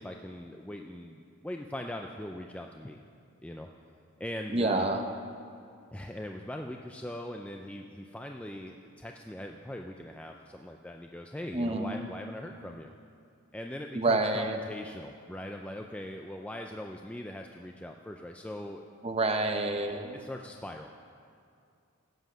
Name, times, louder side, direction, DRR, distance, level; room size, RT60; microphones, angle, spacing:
voice 1, 0.0-3.0 3.4-3.7 4.2-4.9 5.9-12.9 13.5-18.8 20.1-20.9, left 1 dB, 5° left, 3 dB, 0.4 m, -41 dB
voice 2, 4.5-5.0 11.5-12.0 13.9-14.6 19.0-20.2, right 2 dB, 25° right, 5 dB, 0.8 m, -28 dB
15.5 x 7.9 x 6.2 m, 2.4 s
head